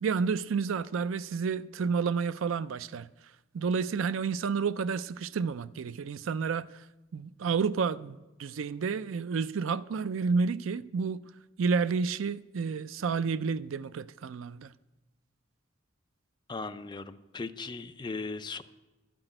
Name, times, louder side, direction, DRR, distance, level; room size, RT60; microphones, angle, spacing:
voice 1, 0.0-3.1 3.5-6.7 7.1-11.2 11.6-14.7, right 5 dB, 75° right, 0.4 m, -30 dB
voice 2, 16.5-18.6, left 3 dB, 20° left, 0.5 m, -38 dB
12.0 x 6.0 x 8.8 m
head